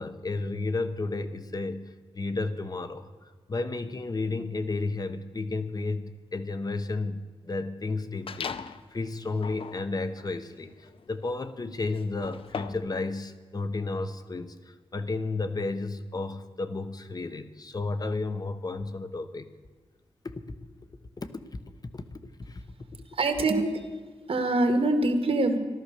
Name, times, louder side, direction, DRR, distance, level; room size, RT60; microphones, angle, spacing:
voice 1, 0.0-3.1 3.5-19.5 20.2-20.3 21.2-21.3 21.9-22.2 22.5-22.6, left 3 dB, 40° left, 10 dB, 1.0 m, -32 dB
sound 1, 8.3-8.9 9.3-13.0, left 6 dB, 65° left, 0.6 m, -39 dB
voice 2, 23.1-23.7 24.3-25.6, right 2 dB, 70° right, 6 dB, 1.9 m, -24 dB
15.0 x 12.5 x 6.7 m, 1.4 s
wide cardioid pair, 95°, 10 cm